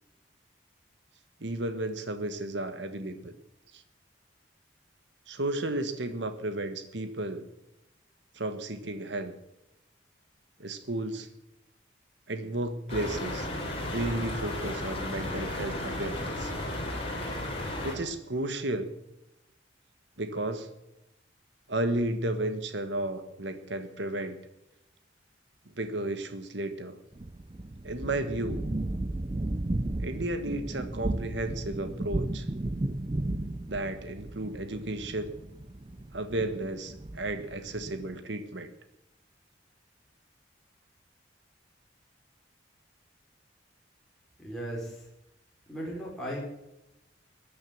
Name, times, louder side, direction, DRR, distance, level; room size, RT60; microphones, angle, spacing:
voice 1, 1.4-3.3 3.7-3.8 5.3-7.4 8.3-9.3 10.6-11.3 12.3-13.5 13.9-16.5 17.8-18.9 20.2-20.7 21.7-24.4 25.8-27.0 27.8-28.6 30.0-32.5 33.7-35.3 36.1-38.7, right 1 dB, 75° right, 9 dB, 1.4 m, -33 dB
sound 1, 12.9-17.9, left 1 dB, 30° left, 4.3 m, -34 dB
sound 2, 27.1-38.2, right 1 dB, 25° right, 0.5 m, -35 dB
voice 2, 44.4-45.0 45.7-46.4, equal, ahead, -5 dB, 4.7 m, -36 dB
14.0 x 10.5 x 7.3 m, 0.87 s
head